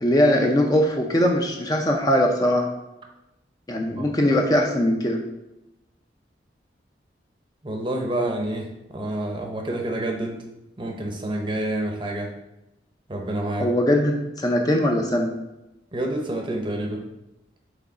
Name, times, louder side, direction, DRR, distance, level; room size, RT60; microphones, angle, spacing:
voice 1, 0.0-2.7 3.7-5.2 13.6-15.3, left 1 dB, 20° left, 2 dB, 0.5 m, -21 dB
voice 2, 7.6-10.4 10.8-12.3 13.1-13.7 15.9-17.1, right 1 dB, 25° right, 2 dB, 0.7 m, -28 dB
6.0 x 4.0 x 3.9 m, 0.93 s
head